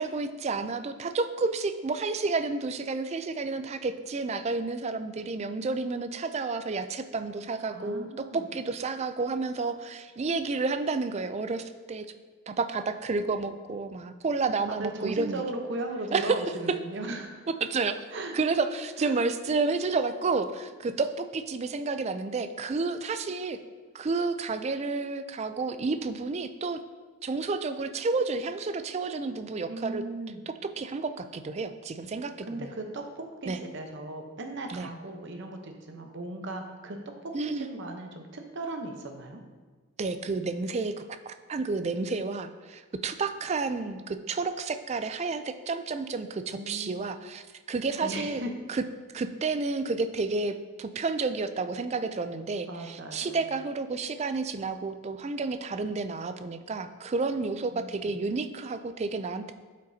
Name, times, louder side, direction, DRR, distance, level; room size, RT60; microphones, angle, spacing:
voice 1, 0.0-12.1 12.5-15.4 16.1-16.4 17.6-18.1 18.3-23.6 23.9-26.8 27.2-30.0 30.8-32.7 33.5-33.6 34.7-34.9 37.3-37.7 40.0-48.4 48.7-48.8 49.1-59.5, right 3 dB, 30° right, 10 dB, 0.3 m, -30 dB
voice 2, 7.7-8.5 14.7-17.4 18.1-18.4 19.0-19.3 29.7-30.4 32.4-39.4 46.5-47.0 48.0-48.5 52.7-53.5 57.7-58.2, right 2 dB, 55° right, 4 dB, 0.8 m, -37 dB
11.5 x 5.2 x 2.7 m, 1.4 s
head